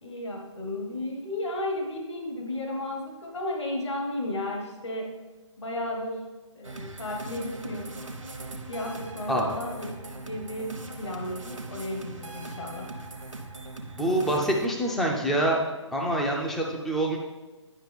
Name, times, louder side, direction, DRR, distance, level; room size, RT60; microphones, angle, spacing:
voice 1, 0.0-5.2 5.6-8.0 8.7-12.9, left 1 dB, 65° left, 0 dB, 1.5 m, -34 dB
sound 1, 6.6-14.7, right 2 dB, 85° right, 1.0 m, -40 dB
voice 2, 14.0-15.6 15.9-17.2, right 1 dB, ahead, 0 dB, 0.3 m, -25 dB
9.7 x 5.7 x 3.4 m, 1.2 s
figure-of-eight pair, 140°, 16 cm